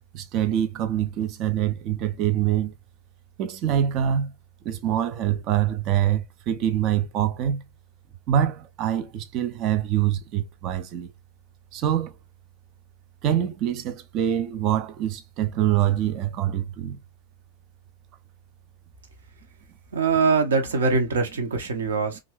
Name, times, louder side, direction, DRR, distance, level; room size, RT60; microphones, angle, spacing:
voice 1, 0.1-2.7 3.4-4.3 4.6-7.6 8.3-11.1 11.7-12.2 13.2-17.0, right 11 dB, 40° right, 0.5 m, -25 dB
voice 2, 19.9-22.2, right 4 dB, 65° right, 0.9 m, -22 dB
3.0 x 2.5 x 3.0 m
figure-of-eight pair, 90°, 0 cm